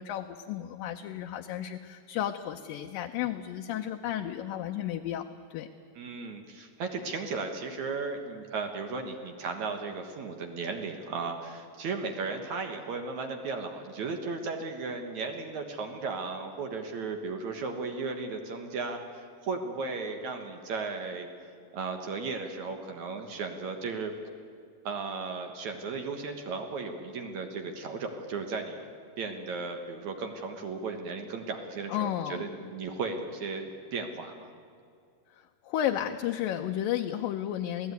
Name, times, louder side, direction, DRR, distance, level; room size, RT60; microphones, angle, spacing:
voice 1, 0.0-5.3 5.5-5.7 31.9-32.4 35.3-37.9, left 11 dB, 75° left, 4 dB, 2.3 m, -33 dB
voice 2, 6.0-21.3 21.7-24.1 24.8-28.9 29.2-34.5, right 4 dB, 60° right, 5 dB, 2.3 m, -35 dB
26.5 x 17.5 x 9.5 m, 2.3 s
omnidirectional pair, 4.5 m